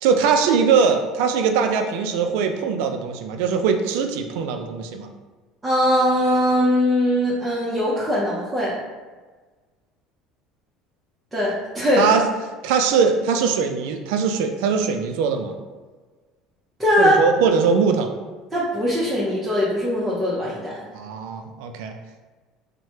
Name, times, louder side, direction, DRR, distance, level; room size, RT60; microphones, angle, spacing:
voice 1, 0.0-5.1 12.0-12.3 12.6-15.6 17.0-18.1 20.9-22.0, right 6 dB, 80° right, 5 dB, 0.3 m, -21 dB
voice 2, 5.6-8.7 11.3-12.1 16.8-17.2 18.5-20.8, equal, 15° right, -7 dB, 0.7 m, -21 dB
3.1 x 2.1 x 2.8 m, 1.3 s
supercardioid pair, 95°, 0 cm